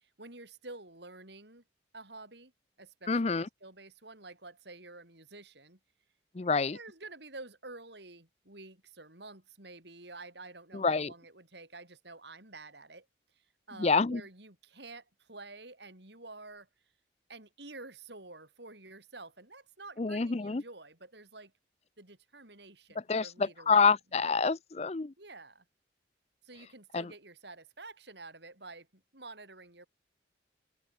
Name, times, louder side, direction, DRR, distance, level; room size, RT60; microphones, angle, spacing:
voice 1, 0.0-1.6 1.9-2.5 2.8-5.8 6.4-13.1 13.4-16.7 17.3-21.5 22.0-23.9 25.2-25.6 26.4-29.9, right 3 dB, 65° right, 5.6 m, -49 dB
voice 2, 3.1-3.5 6.3-6.8 10.7-11.1 13.8-14.2 20.0-20.6 23.0-25.1 26.9-27.1, left 4 dB, 35° left, 0.5 m, -27 dB
head